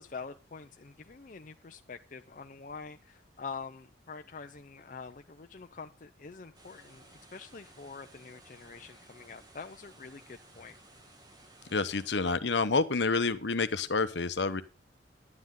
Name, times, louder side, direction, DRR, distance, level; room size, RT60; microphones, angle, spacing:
voice 1, 0.0-10.8, left 5 dB, 45° left, 7 dB, 0.5 m, -46 dB
sound 1, 6.5-12.1, right 2 dB, 20° right, 1.9 m, -57 dB
voice 2, 11.7-14.6, left 4 dB, 70° left, 12 dB, 0.9 m, -28 dB
10.5 x 9.7 x 3.8 m, 0.31 s
head